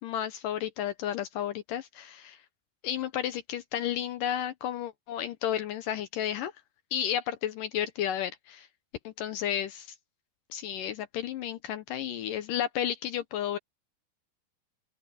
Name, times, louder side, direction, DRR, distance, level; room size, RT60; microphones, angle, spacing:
voice 1, 0.0-2.4 2.8-6.5 6.9-8.7 9.0-9.9 10.5-13.6, left 10 dB, 75° left, 2.0 m, -32 dB
open air
omnidirectional pair, 4.9 m